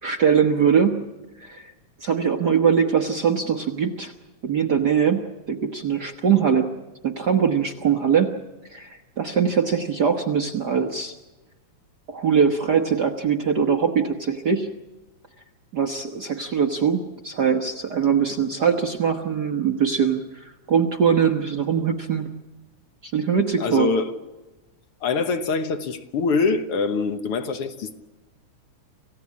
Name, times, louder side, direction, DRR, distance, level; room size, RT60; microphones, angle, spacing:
voice 1, 0.0-1.0 1.4-1.7 2.0-4.1 4.4-6.7 7.0-8.3 8.7-11.1 12.1-14.7 15.7-22.3 23.0-23.9, right 7 dB, 55° right, 1.2 m, -22 dB
voice 2, 23.6-24.2 25.0-27.9, left 4 dB, 60° left, 1.7 m, -24 dB
28.0 x 16.0 x 8.5 m
omnidirectional pair, 3.4 m